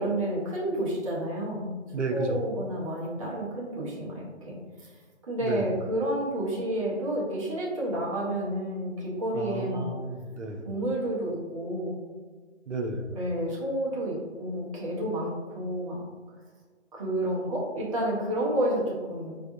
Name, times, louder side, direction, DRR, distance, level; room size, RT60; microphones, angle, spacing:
voice 1, 0.0-1.8 2.1-4.9 5.3-9.9 10.6-12.0 13.1-16.0 16.9-19.4, right 1 dB, 30° right, -5 dB, 0.8 m, -30 dB
voice 2, 1.9-2.5 5.4-5.7 9.3-10.7 12.7-13.2, right 2 dB, 75° right, 4 dB, 0.7 m, -32 dB
4.4 x 3.4 x 2.6 m, 1.4 s
figure-of-eight pair, 145°, 36 cm